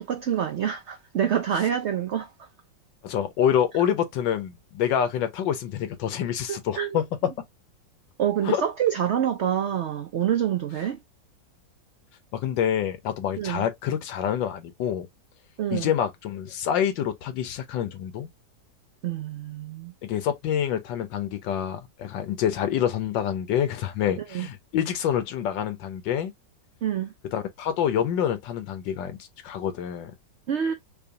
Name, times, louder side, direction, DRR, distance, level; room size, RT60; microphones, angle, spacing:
voice 1, 0.0-2.3 6.5-7.0 8.2-11.0 13.4-13.6 15.6-15.9 19.0-19.9 24.3-24.5 26.8-27.1 30.5-30.7, right 9 dB, 85° right, 0.6 m, -26 dB
voice 2, 3.0-7.3 8.4-8.6 12.3-15.1 15.7-18.3 20.0-26.3 27.3-30.1, left 9 dB, 85° left, 1.5 m, -27 dB
4.9 x 2.4 x 2.5 m
omnidirectional pair, 1.9 m